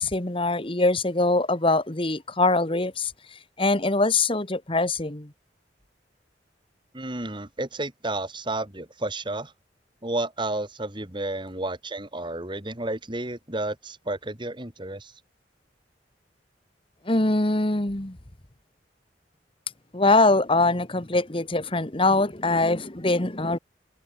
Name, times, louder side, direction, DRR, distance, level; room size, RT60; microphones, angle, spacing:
voice 1, 0.0-5.3 17.0-18.2 19.9-23.6, left 2 dB, 30° left, 1.7 m, -23 dB
voice 2, 6.9-9.5 10.0-15.1, right 2 dB, 25° right, 3.4 m, -31 dB
head